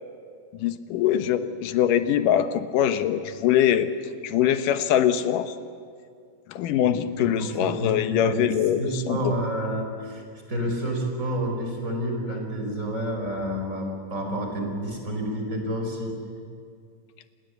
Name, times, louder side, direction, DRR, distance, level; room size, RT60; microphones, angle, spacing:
voice 1, 0.5-3.9 4.2-5.6 6.5-9.4, left 10 dB, 70° left, 10 dB, 2.5 m, -23 dB
voice 2, 6.8-8.5 8.8-10.2 10.5-16.2, right 1 dB, 20° right, 2 dB, 4.8 m, -29 dB
28.5 x 20.5 x 8.1 m, 2.2 s
omnidirectional pair, 4.1 m